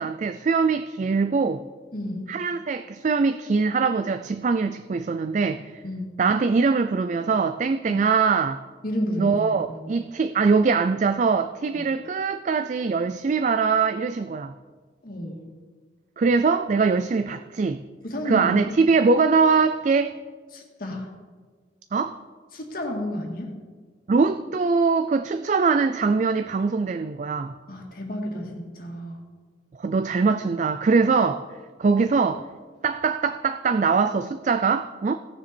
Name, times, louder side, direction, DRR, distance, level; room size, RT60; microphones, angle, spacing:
voice 1, 0.0-1.6 2.3-5.8 6.2-8.6 9.2-14.5 16.2-17.8 18.2-20.2 21.9-22.2 24.1-27.5 29.8-31.4 31.8-32.4 32.8-35.2, right 4 dB, 40° right, 9 dB, 0.4 m, -22 dB
voice 2, 1.9-2.3 5.8-6.1 7.9-8.0 8.8-9.9 15.0-15.4 18.0-18.8 20.5-21.1 22.5-23.5 27.7-29.2, left 1 dB, 55° left, 0 dB, 2.1 m, -31 dB
17.5 x 6.9 x 4.5 m, 1.5 s
head